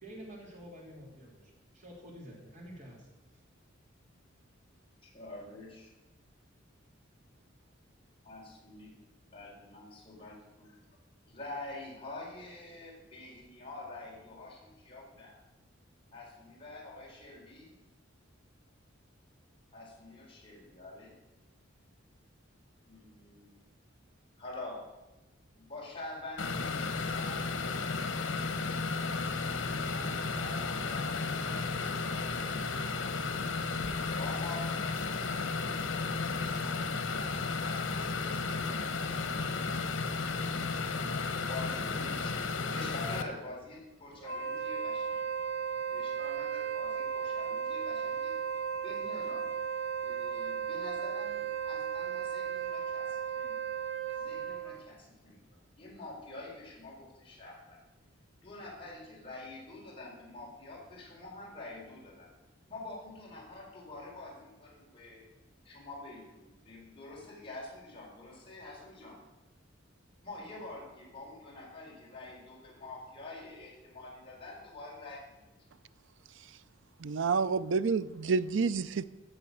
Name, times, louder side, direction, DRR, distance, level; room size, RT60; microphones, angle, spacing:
voice 1, 0.0-3.1, equal, 40° right, -1 dB, 3.4 m, -49 dB
voice 2, 5.0-5.9 8.2-8.9 9.3-10.7 11.3-15.4 16.1-17.7 19.7-21.1 22.9-23.6 24.4-24.8 25.5-27.5 29.7-33.2 34.2-38.2 38.6-40.0 41.1-45.2 45.9-48.3 48.8-49.5 50.0-53.6 54.2-55.4 55.8-57.8 58.4-62.3 62.7-65.3 65.6-69.2 70.2-75.5, left 2 dB, 30° left, -3 dB, 4.2 m, -47 dB
sound 1, 26.4-43.2, left 4 dB, 85° left, 1.2 m, -33 dB
Wind instrument woodwind instrument, 44.2-54.8, right 7 dB, 90° right, 1.5 m, -35 dB
voice 3, 77.0-79.0, right 5 dB, 70° right, 15 dB, 0.5 m, -29 dB
15.5 x 6.9 x 6.4 m, 1.1 s
head